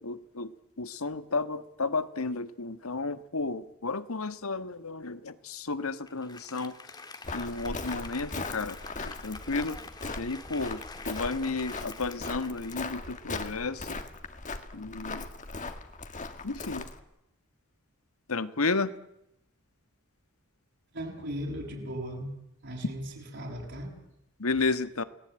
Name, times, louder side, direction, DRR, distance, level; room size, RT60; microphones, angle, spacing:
voice 1, 0.0-6.8 7.3-9.8 10.1-14.0 14.7-15.3 16.4-16.9 18.3-18.9 24.4-25.0, left 3 dB, 80° left, 12 dB, 1.5 m, -32 dB
Applause, 6.1-13.7, left 3 dB, 20° left, 1.8 m, -46 dB
Walk footsteps, 7.2-17.0, left 3 dB, 35° left, 2.0 m, -39 dB
voice 2, 20.9-22.3 22.6-23.9, equal, 55° right, 0 dB, 6.4 m, -37 dB
29.5 x 19.0 x 8.9 m, 0.86 s
head